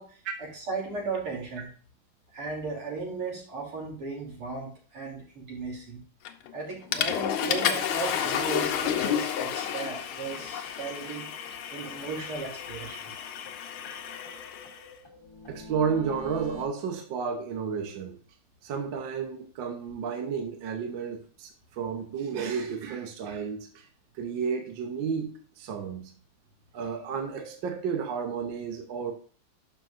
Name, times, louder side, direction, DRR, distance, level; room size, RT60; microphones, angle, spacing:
voice 1, 0.0-1.7 2.3-6.0 6.5-11.3 11.7-13.1, right 4 dB, 85° right, 3.8 m, -36 dB
Water / Toilet flush, 6.2-6.5 6.9-14.8, left 9 dB, 80° left, 1.6 m, -31 dB
sound 1, 10.2-10.3 10.6-10.7 11.0-11.1 11.4-11.5 11.8-13.1 13.4-16.6, left 2 dB, 15° left, 2.4 m, -47 dB
voice 2, 15.5-18.2 18.6-23.8 24.1-26.1 26.7-29.1, right 6 dB, 65° right, 1.6 m, -32 dB
12.0 x 5.4 x 2.5 m
omnidirectional pair, 2.4 m